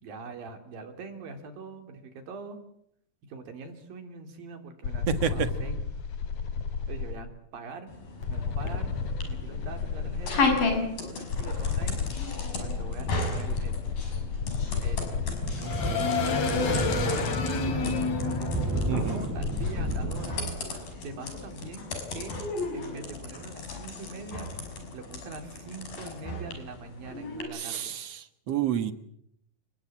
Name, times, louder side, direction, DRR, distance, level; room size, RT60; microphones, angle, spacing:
voice 1, 0.0-2.6 3.3-5.8 6.9-7.9 8.3-8.9 9.3-10.5 11.0-12.1 12.5-13.9 14.8-17.3 17.6-20.4 21.0-22.3 22.7-24.5 24.9-27.9, right 4 dB, 90° right, 7 dB, 4.8 m, -43 dB
sound 1, 4.8-7.1 8.2-10.8 11.3-20.1, left 5 dB, 55° left, 3.8 m, -31 dB
voice 2, 5.1-5.5 18.9-19.2 27.5-28.9, right 8 dB, 55° right, 10 dB, 2.5 m, -29 dB
sound 2, 7.9-27.4, left 3 dB, 85° left, 7.6 m, -35 dB
Wind, 15.2-20.8, right 2 dB, 5° right, 5.9 m, -32 dB
30.0 x 20.5 x 8.7 m, 0.74 s
omnidirectional pair, 3.9 m